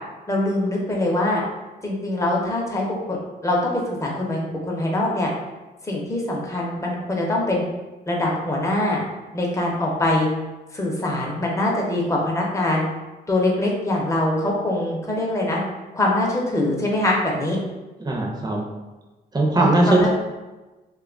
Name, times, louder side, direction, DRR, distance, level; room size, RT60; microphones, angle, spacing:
voice 1, 0.3-1.4 1.8-3.2 3.4-5.3 5.8-7.6 8.1-9.0 9.3-10.3 10.7-12.8 13.3-15.6 15.9-17.6 19.6-20.1, left 1 dB, 20° left, -2 dB, 0.8 m, -23 dB
voice 2, 18.0-18.6 19.3-20.1, right 2 dB, 25° right, -1 dB, 0.7 m, -19 dB
2.8 x 2.3 x 3.8 m, 1.2 s
cardioid pair, 110°, 17 cm